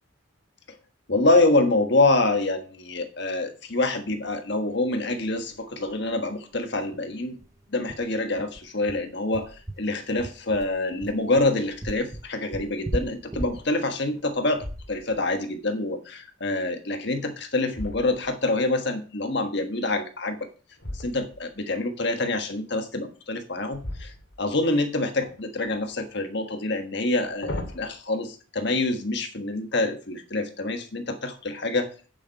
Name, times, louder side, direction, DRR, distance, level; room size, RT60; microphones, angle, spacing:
voice 1, 1.1-7.4 7.7-20.5 20.9-24.1 24.4-31.9, left 2 dB, 55° left, 6 dB, 1.4 m, -26 dB
sound 1, 5.0-5.1 5.4-5.5 5.8-6.0 6.4-6.5 6.9-15.3, right 1 dB, 15° right, 0.5 m, -37 dB
sound 2, 11.7-12.1 12.6-12.7 13.4-13.9 14.5-15.4 17.0-18.7 20.8-21.6 23.7-24.8 25.2-26.0 27.0-27.9, left 1 dB, 85° left, 2.6 m, -39 dB
9.2 x 7.0 x 4.6 m, 0.37 s
head